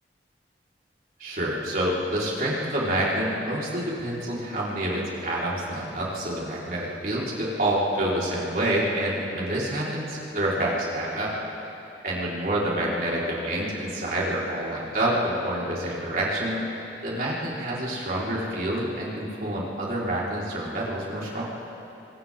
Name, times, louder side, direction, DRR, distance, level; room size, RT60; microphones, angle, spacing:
voice 1, 1.2-11.4 12.0-16.6 17.0-21.4, right 1 dB, 55° right, -7 dB, 4.6 m, -27 dB
29.0 x 25.5 x 3.8 m, 2.9 s
head